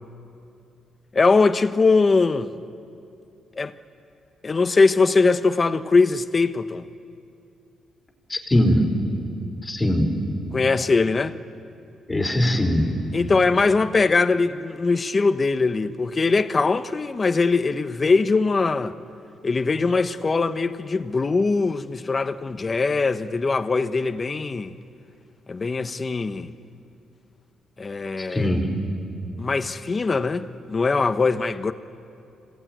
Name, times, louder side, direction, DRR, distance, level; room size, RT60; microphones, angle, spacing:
voice 1, 1.1-2.5 3.6-3.7 4.4-6.8 10.5-11.4 13.1-19.0 19.4-24.8 25.5-26.5 27.8-28.5 29.4-31.7, left 4 dB, 35° left, 1.0 m, -21 dB
voice 2, 8.3-8.9 9.6-10.2 12.1-12.9 28.2-28.7, left 1 dB, 20° left, 4.3 m, -21 dB
26.5 x 18.0 x 9.3 m
cardioid pair, 85°, 0 cm